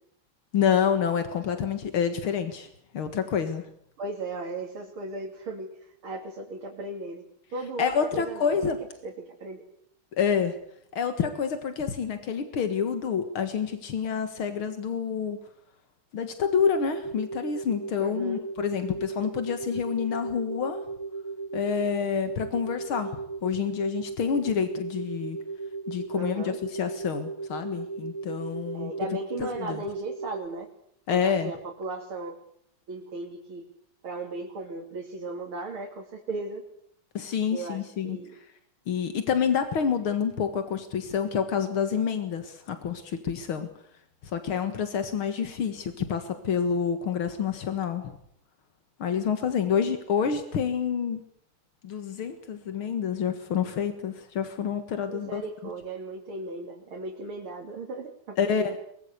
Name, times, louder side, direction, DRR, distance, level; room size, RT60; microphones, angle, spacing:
voice 1, 0.5-2.7 2.9-3.6 7.8-8.8 10.1-10.6 10.9-15.4 16.1-20.8 21.5-25.4 25.9-28.9 29.4-29.8 31.1-31.5 37.1-38.2 38.9-43.7 44.2-48.2 49.0-51.2 51.8-55.4 58.4-58.8, left 7 dB, 85° left, 9 dB, 2.6 m, -28 dB
voice 2, 4.0-7.2 7.5-8.7 9.0-9.6 18.0-18.4 26.2-26.6 28.7-30.7 31.1-32.3 32.9-33.7 34.0-36.6 37.5-38.3 55.1-58.7, right 2 dB, 85° right, 0 dB, 3.7 m, -36 dB
sound 1, 16.4-30.5, right 4 dB, 45° right, 2.1 m, -36 dB
23.0 x 21.0 x 8.4 m, 0.68 s
omnidirectional pair, 2.3 m